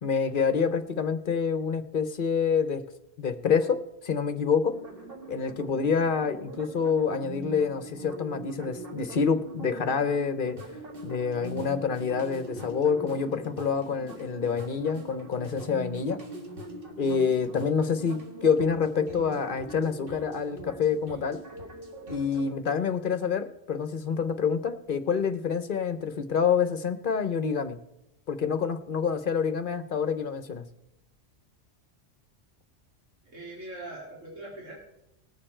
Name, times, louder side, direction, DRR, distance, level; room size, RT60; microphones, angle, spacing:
voice 1, 0.0-2.8 3.2-4.8 5.3-10.6 11.0-16.2 17.0-21.4 22.1-27.8 28.3-30.6, left 6 dB, 50° left, 10 dB, 0.8 m, -27 dB
sound 1, 4.7-22.5, right 1 dB, 50° right, 1.6 m, -42 dB
voice 2, 33.2-34.7, right 2 dB, 85° right, -4 dB, 2.6 m, -41 dB
19.5 x 6.7 x 4.4 m, 0.87 s
omnidirectional pair, 1.3 m